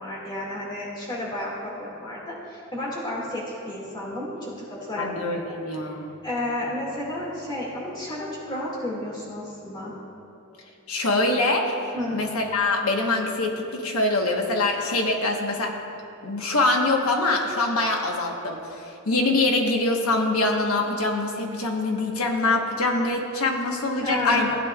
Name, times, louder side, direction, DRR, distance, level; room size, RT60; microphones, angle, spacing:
voice 1, 0.0-5.9 6.2-9.9 11.9-12.3 24.0-24.5, left 1 dB, 20° left, -5 dB, 2.0 m, -32 dB
voice 2, 5.0-6.2 10.9-15.7 16.2-24.5, left 2 dB, 85° left, 1 dB, 1.2 m, -24 dB
16.0 x 9.0 x 2.4 m, 2.8 s
head